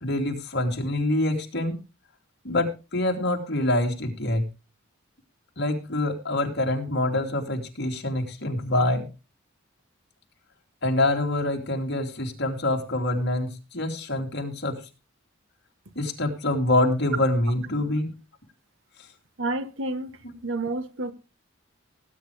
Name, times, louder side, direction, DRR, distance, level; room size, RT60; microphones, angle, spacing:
voice 1, 0.0-1.8 2.4-4.5 5.6-9.1 10.8-14.8 15.9-18.1, left 1 dB, 55° left, 3.1 m, -25 dB
voice 2, 19.4-21.1, right 2 dB, 65° right, 1.3 m, -30 dB
19.0 x 9.3 x 3.4 m
head